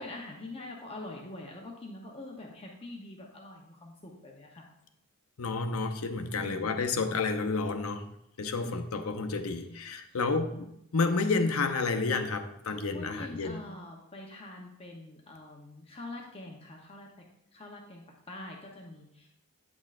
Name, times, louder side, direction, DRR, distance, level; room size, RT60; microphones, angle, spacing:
voice 1, 0.0-4.7 6.2-6.8 8.6-8.7 9.5-10.4 12.7-17.3 17.5-19.3, left 2 dB, 25° left, -1 dB, 0.8 m, -45 dB
voice 2, 5.4-8.0 8.4-10.7 10.9-13.6, left 3 dB, 70° left, 6 dB, 0.7 m, -30 dB
8.7 x 6.1 x 2.5 m, 0.78 s
head